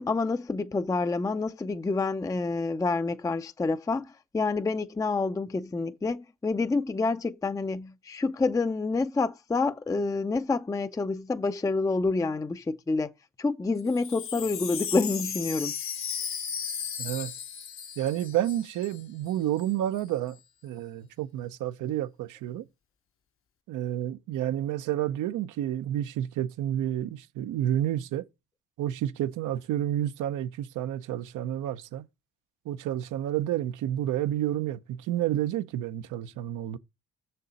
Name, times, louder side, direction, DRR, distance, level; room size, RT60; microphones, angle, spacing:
voice 1, 0.0-13.1 13.4-15.7, left 3 dB, 10° left, 0.4 m, -28 dB
Wind chime, 13.8-19.0 19.3-19.4 19.6-20.0, left 7 dB, 45° left, 0.7 m, -36 dB
voice 2, 17.0-17.4 18.0-22.6 23.7-28.3 28.8-32.0 32.6-36.8, right 12 dB, 85° right, 0.7 m, -30 dB
6.7 x 6.5 x 4.0 m
cardioid pair, 90°, 30 cm